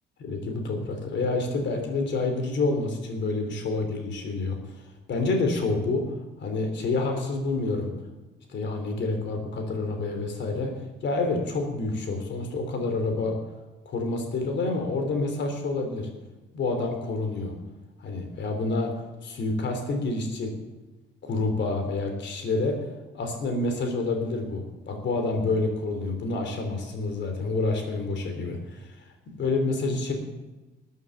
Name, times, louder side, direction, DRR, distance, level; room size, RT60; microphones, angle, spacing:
voice 1, 0.2-4.6 5.1-6.1 6.4-7.9 8.5-10.7 11.0-13.4 13.8-16.1 16.5-17.5 18.0-18.9 19.2-20.5 21.2-22.8 23.1-28.9 29.4-30.1, left 3 dB, 65° left, 5 dB, 3.3 m, -28 dB
14.0 x 9.3 x 7.2 m, 1.1 s
cardioid pair, 90°, 20 cm